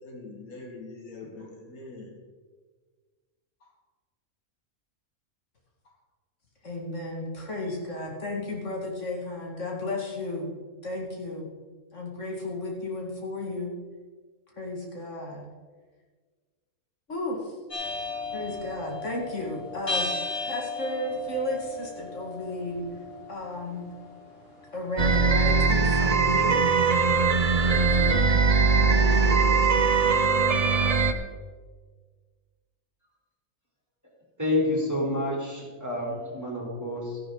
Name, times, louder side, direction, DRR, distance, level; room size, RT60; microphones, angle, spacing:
voice 1, 0.0-2.1 3.6-3.7, left 3 dB, 85° left, 1 dB, 2.3 m, -43 dB
voice 2, 6.6-10.5 10.8-11.4 11.9-13.7 14.6-15.4 17.1-17.6 18.3-20.1 20.4-22.8 23.3-23.8 24.7-26.7 27.6-28.3 28.7-29.7, left 2 dB, 55° left, -2 dB, 2.4 m, -33 dB
sound 1, 17.7-29.8, left 3 dB, 40° left, 4.0 m, -37 dB
sound 2, 25.0-31.1, right 4 dB, 35° right, 0.6 m, -21 dB
voice 3, 34.4-37.2, left 1 dB, 10° right, -4 dB, 3.7 m, -28 dB
13.5 x 11.0 x 3.9 m, 1.5 s
omnidirectional pair, 1.5 m